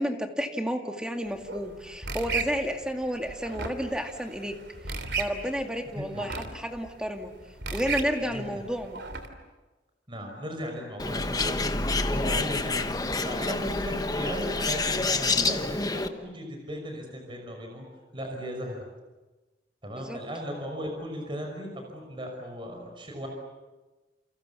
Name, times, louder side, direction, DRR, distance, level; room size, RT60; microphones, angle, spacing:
voice 1, 0.0-4.6 5.2-7.3 7.7-9.0 19.9-20.2, equal, 5° right, 4 dB, 2.2 m, -31 dB
sound 1, 1.2-9.3, right 4 dB, 75° right, 3.3 m, -36 dB
voice 2, 5.9-6.3 8.3-8.7 10.1-11.6 12.1-17.8 18.1-18.8 19.8-23.3, equal, 30° right, 2 dB, 5.7 m, -36 dB
Bird, 11.0-16.1, left 3 dB, 20° left, 1.2 m, -28 dB
29.0 x 28.5 x 7.1 m, 1.2 s
head